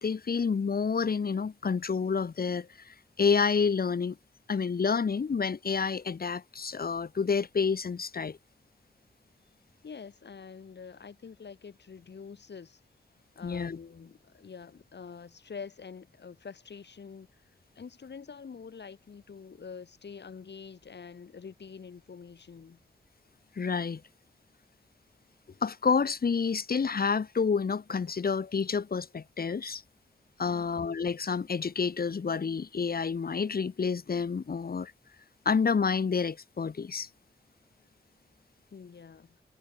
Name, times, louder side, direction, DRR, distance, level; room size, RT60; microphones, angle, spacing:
voice 1, 0.0-4.2 4.5-8.4 13.4-13.8 23.6-24.0 25.6-29.8 30.4-34.9 35.4-37.1, left 5 dB, 60° left, 1.4 m, -29 dB
voice 2, 9.8-12.8 13.3-17.4 17.7-22.8 30.5-30.8 38.7-39.4, left 6 dB, 75° left, 5.1 m, -46 dB
wide cardioid pair, 105°, 18 cm